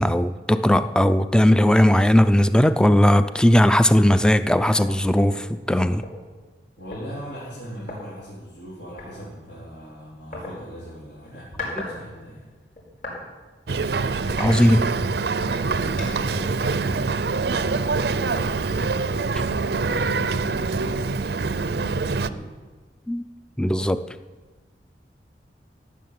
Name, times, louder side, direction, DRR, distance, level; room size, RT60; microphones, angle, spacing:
voice 1, 0.0-6.0 11.8-11.9 14.4-14.8 23.1-23.2 23.6-24.0, equal, 5° left, 0.5 m, -18 dB
sound 1, 1.9-2.1 2.6-2.7 3.1-3.4 4.4-4.5 4.7-6.1 6.9-7.0 7.8-8.0 9.0-9.1 10.3-10.5 11.2-11.9 12.2-13.2 13.7-13.8 14.3-15.1 15.5-16.3, left 2 dB, 50° left, 5.3 m, -37 dB
voice 2, 6.8-12.4 14.4-15.1 15.6-22.6, equal, 80° left, 3.8 m, -40 dB
Boat Water vehicle, 13.7-22.3, right 4 dB, 65° right, 0.6 m, -25 dB
15.5 x 7.4 x 9.4 m
head